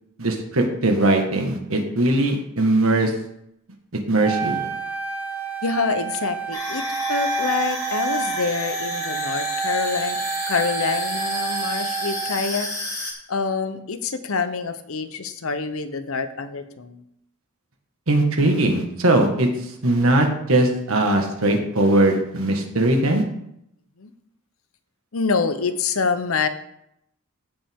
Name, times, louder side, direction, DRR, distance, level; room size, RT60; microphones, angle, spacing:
voice 1, 0.2-3.1 3.9-4.7 18.1-19.5 19.8-23.2, right 2 dB, 70° right, 3 dB, 1.6 m, -20 dB
Wind instrument woodwind instrument, 4.2-12.5, right 4 dB, 10° right, 1.1 m, -28 dB
voice 2, 5.6-6.8 7.1-10.2 10.5-12.7 13.3-17.0 24.0-24.1 25.1-26.5, left 4 dB, 70° left, 10 dB, 0.8 m, -26 dB
sound 1, 6.5-13.1, left 1 dB, 15° left, 1.9 m, -31 dB
15.5 x 5.4 x 3.6 m, 0.78 s
head